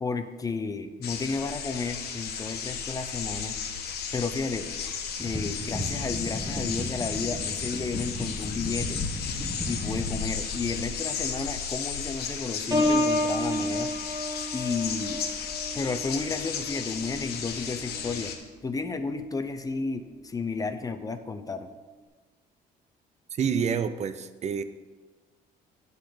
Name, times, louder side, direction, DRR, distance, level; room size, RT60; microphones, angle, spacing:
voice 1, 0.0-3.6 4.1-4.7 5.2-9.0 9.7-13.9 14.5-15.3 15.7-18.3 18.6-21.7, left 4 dB, 20° left, 8 dB, 0.6 m, -32 dB
sound 1, 1.0-18.4, left 6 dB, 70° left, 1.2 m, -34 dB
sound 2, 5.2-10.3, equal, ahead, 1.3 m, -35 dB
Piano, 12.7-18.3 18.8-19.1, left 1 dB, 25° right, 2.5 m, -30 dB
voice 2, 23.3-24.6, right 7 dB, 40° right, 12 dB, 0.5 m, -28 dB
10.5 x 4.0 x 6.6 m, 1.3 s
cardioid pair, 110°, 17 cm